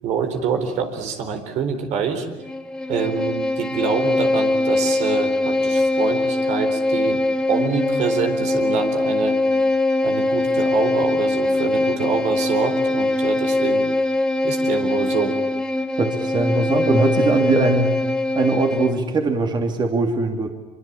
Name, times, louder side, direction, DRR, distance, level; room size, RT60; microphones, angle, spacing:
voice 1, 0.0-2.3 2.9-7.2 7.5-9.4 10.0-13.8 14.4-15.4, right 6 dB, 70° right, 6 dB, 4.1 m, -26 dB
Bowed string instrument, 2.4-19.1, left 2 dB, 5° left, 1.7 m, -22 dB
voice 2, 16.0-17.9 18.3-20.5, right 3 dB, 40° right, 4 dB, 3.0 m, -20 dB
25.0 x 24.0 x 8.9 m, 1.1 s
cardioid pair, 115°, 12 cm